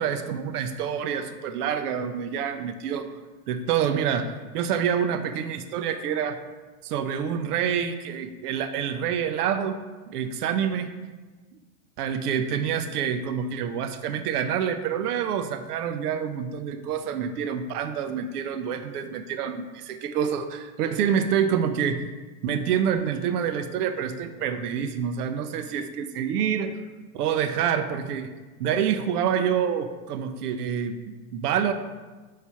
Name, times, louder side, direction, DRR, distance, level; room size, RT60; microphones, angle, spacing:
voice 1, 0.0-3.1 3.5-6.4 6.8-9.8 10.1-10.9 12.0-22.1 22.4-26.8 27.1-28.3 28.6-31.7, right 8 dB, 80° right, 8 dB, 0.6 m, -27 dB
5.6 x 3.3 x 5.6 m, 1.3 s
supercardioid pair, 160°, 46 cm